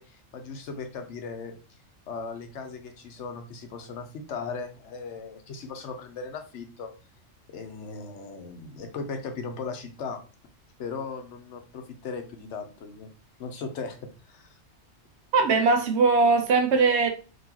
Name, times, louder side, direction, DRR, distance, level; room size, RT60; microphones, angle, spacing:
voice 1, 0.0-1.5 2.1-6.9 7.5-10.2 10.8-13.1 13.4-14.6, left 4 dB, 65° left, 0.9 m, -37 dB
voice 2, 15.3-17.1, right 4 dB, 65° right, 0.8 m, -20 dB
3.8 x 2.8 x 2.8 m
omnidirectional pair, 1.3 m